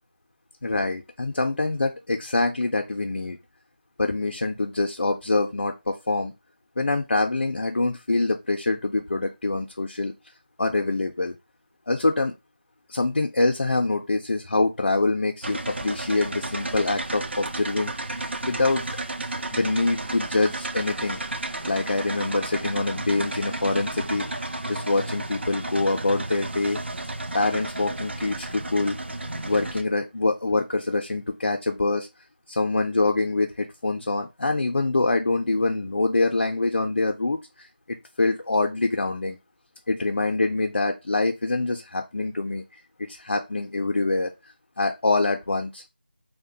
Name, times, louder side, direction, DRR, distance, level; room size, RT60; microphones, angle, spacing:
voice 1, 0.6-3.4 4.0-6.3 6.8-10.1 10.6-11.4 11.9-12.3 12.9-17.9 18.4-18.8 19.5-21.2 21.7-24.3 24.7-26.8 27.3-29.0 29.4-32.1 32.5-39.4 39.9-42.6 43.1-44.3 44.8-45.8, left 2 dB, 75° left, 3 dB, 0.4 m, -25 dB
sound 1, 15.4-29.8, right 2 dB, 90° right, 0.5 m, -32 dB
2.8 x 2.1 x 2.6 m, 0.24 s
figure-of-eight pair, 180°, 6 cm